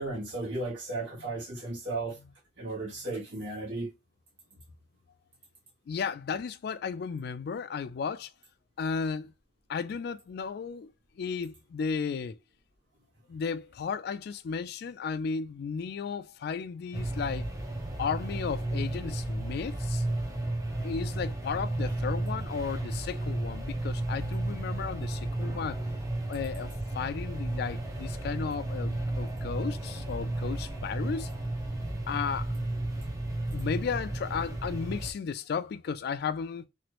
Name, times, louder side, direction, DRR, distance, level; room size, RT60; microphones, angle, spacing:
voice 1, 0.0-2.2 2.6-3.9, right 2 dB, 80° right, 1.3 m, -35 dB
voice 2, 5.9-8.3 8.8-9.3 9.7-10.9 11.2-12.4 13.3-17.5 18.0-20.0 20.8-25.8 26.3-31.3 31.8-32.5 33.5-36.7, left 6 dB, 55° left, 0.3 m, -34 dB
sound 1, 16.9-35.1, right 1 dB, 15° right, 0.6 m, -33 dB
3.0 x 2.5 x 2.9 m
head